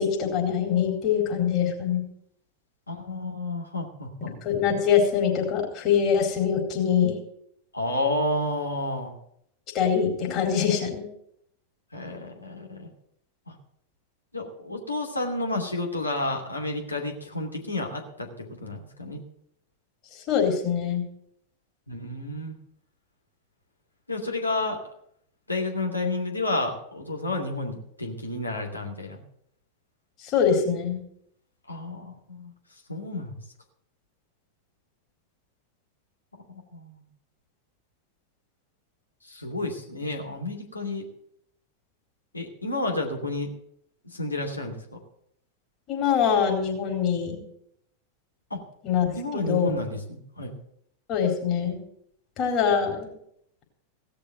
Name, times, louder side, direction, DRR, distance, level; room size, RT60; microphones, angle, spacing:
voice 1, 0.0-2.0 4.4-7.2 9.7-11.1 20.3-21.0 30.2-31.0 45.9-47.4 48.8-49.8 51.1-51.8 52.4-53.1, left 7 dB, 35° left, 1 dB, 4.4 m, -24 dB
voice 2, 2.9-4.3 7.7-9.1 11.9-12.9 13.5-13.6 14.3-19.2 21.9-22.5 24.1-24.8 25.5-29.2 31.7-32.5 32.9-33.4 36.5-37.0 39.2-41.1 42.3-43.5 44.0-44.8 48.5-48.6 49.2-50.5, left 2 dB, 80° left, 1 dB, 2.7 m, -31 dB
17.0 x 6.8 x 8.0 m, 0.72 s
figure-of-eight pair, 90°, 0 cm